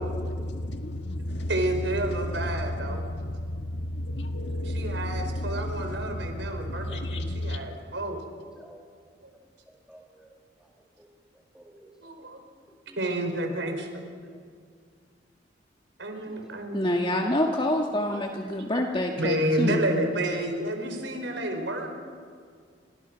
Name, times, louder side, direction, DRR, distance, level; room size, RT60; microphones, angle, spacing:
voice 1, 0.0-7.6, left 1 dB, 70° left, 1.7 m, -32 dB
voice 2, 1.5-3.1 4.7-8.2 12.0-12.4 13.0-13.9 16.0-17.0 18.1-18.2 19.2-21.9, right 1 dB, 80° right, 4.8 m, -30 dB
voice 3, 9.7-11.1 11.3-12.3 12.7-13.0 14.2-14.4 16.3-16.4 16.7-17.0, right 1 dB, 5° right, 2.1 m, -55 dB
voice 4, 16.7-19.8, left 1 dB, 30° left, 1.6 m, -26 dB
29.5 x 26.5 x 6.3 m
head